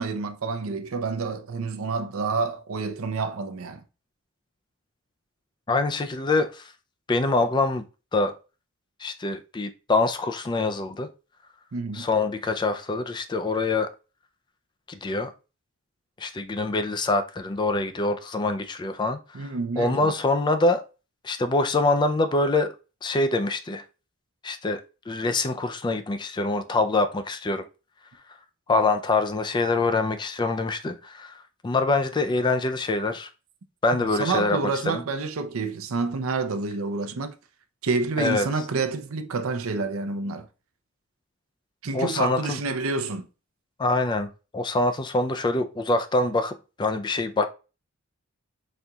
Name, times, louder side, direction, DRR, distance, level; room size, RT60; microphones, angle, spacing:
voice 1, 0.0-3.8 11.7-12.1 19.3-20.1 34.2-37.3 37.8-40.5 41.8-43.3, right 4 dB, 75° right, 0.6 m, -28 dB
voice 2, 5.7-6.7 7.1-7.8 8.1-8.3 9.0-11.1 11.9-13.9 14.9-15.3 16.2-20.8 21.2-22.7 23.0-23.8 24.4-24.8 25.1-27.7 28.7-31.4 31.6-33.3 33.8-35.0 38.2-38.5 41.9-42.6 43.8-47.5, left 2 dB, 20° left, 0.3 m, -25 dB
4.3 x 3.8 x 2.3 m
head